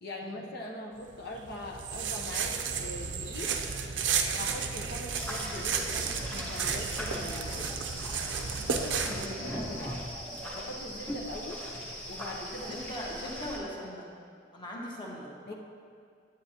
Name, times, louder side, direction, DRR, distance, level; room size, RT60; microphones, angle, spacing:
voice 1, 0.0-3.5 4.4-7.7 8.7-10.0 10.5-11.6 12.1-12.8 15.5-15.6, left 1 dB, 60° left, -1 dB, 0.8 m, -41 dB
sound 1, 1.0-9.3, right 6 dB, 80° right, 0.6 m, -33 dB
sound 2, 5.1-13.6, equal, 10° left, 1.1 m, -39 dB
voice 2, 12.5-14.1 14.5-15.5, equal, 25° left, -4 dB, 1.4 m, -40 dB
10.0 x 9.0 x 2.9 m, 2.2 s
head